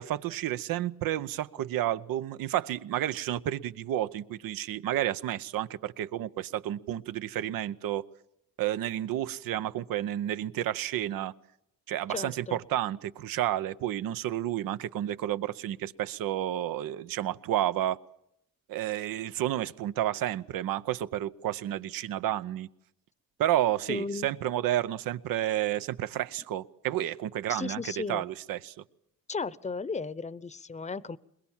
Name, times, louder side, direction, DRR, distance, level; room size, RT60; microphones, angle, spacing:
voice 1, 0.0-8.0 8.6-11.3 11.9-18.0 18.7-22.7 23.4-27.8 28.1-28.7, right 12 dB, 85° right, 0.8 m, -31 dB
voice 2, 12.1-12.6 23.9-24.3 27.5-28.2 29.3-31.2, left 4 dB, 20° left, 0.8 m, -35 dB
21.5 x 21.5 x 7.3 m
cardioid pair, 60°, 34 cm